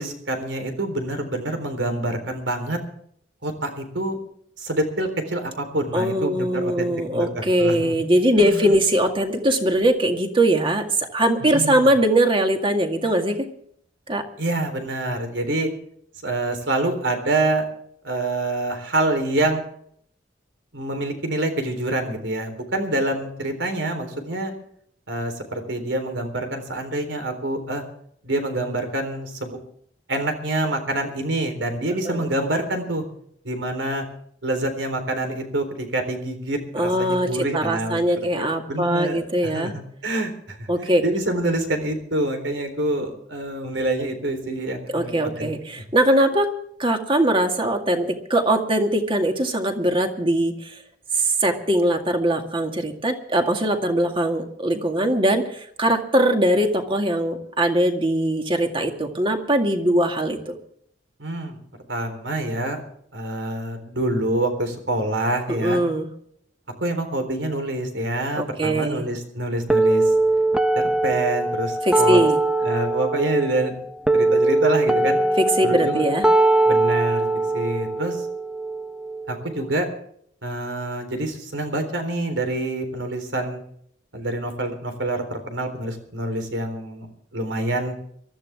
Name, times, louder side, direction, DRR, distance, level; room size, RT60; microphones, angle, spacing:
voice 1, 0.0-2.8 3.4-4.2 4.6-7.9 8.4-8.7 11.4-11.9 14.4-15.7 16.2-17.7 18.0-19.6 20.7-24.5 25.1-27.8 28.2-29.6 30.1-33.0 33.4-34.0 34.4-45.5 61.2-61.6 61.9-62.8 63.1-65.8 66.8-70.1 70.7-72.2 72.6-73.8 74.1-75.2 75.6-76.0 76.7-78.3 79.3-79.9 80.4-83.6 84.1-87.1 87.3-87.9, right 1 dB, 85° right, 6 dB, 3.9 m, -26 dB
voice 2, 5.9-13.5 14.1-14.2 32.1-32.3 36.7-39.7 40.7-41.0 44.9-46.5 46.8-50.7 51.1-60.6 65.5-66.1 68.4-69.0 71.8-72.4 75.4-76.3, right 1 dB, 30° right, 4 dB, 2.1 m, -21 dB
sound 1, 69.7-79.7, right 2 dB, 5° right, 0.9 m, -21 dB
23.5 x 14.0 x 3.6 m, 0.65 s
head